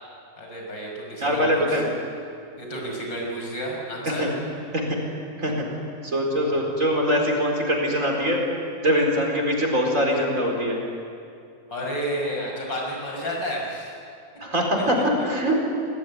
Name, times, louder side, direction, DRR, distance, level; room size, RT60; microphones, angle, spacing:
voice 1, 0.4-1.8 2.6-4.2 11.7-13.9, equal, 80° left, -1 dB, 6.7 m, -31 dB
voice 2, 1.2-1.9 4.2-4.3 4.7-5.6 6.0-8.4 8.8-10.8 14.4-15.7, equal, 45° right, 0 dB, 4.7 m, -23 dB
26.5 x 18.0 x 9.8 m, 2.5 s
omnidirectional pair, 2.0 m